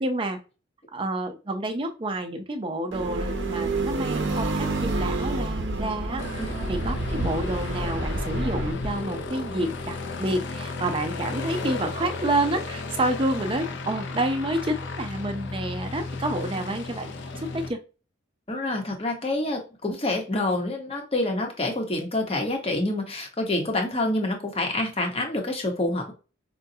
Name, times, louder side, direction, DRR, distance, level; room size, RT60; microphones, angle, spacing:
voice 1, 0.0-0.4 0.9-17.8, right 1 dB, 30° right, 5 dB, 0.6 m, -29 dB
sound 1, 2.9-8.7, right 2 dB, 70° right, 0.7 m, -28 dB
Aircraft, 6.2-17.7, left 3 dB, 70° left, 0.6 m, -34 dB
voice 2, 18.5-26.1, left 2 dB, 30° left, 3 dB, 1.0 m, -27 dB
5.0 x 2.3 x 2.7 m, 0.32 s
head